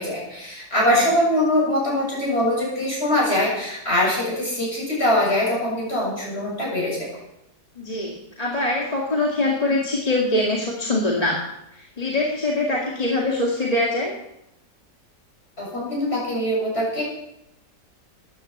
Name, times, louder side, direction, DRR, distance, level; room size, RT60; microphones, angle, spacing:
voice 1, 0.0-7.1 15.6-17.0, left 1 dB, 40° left, -4 dB, 7.7 m, -22 dB
voice 2, 7.8-11.4 11.7-14.1, left 2 dB, 25° left, -2 dB, 2.1 m, -23 dB
14.0 x 10.0 x 8.1 m, 0.85 s
omnidirectional pair, 1.7 m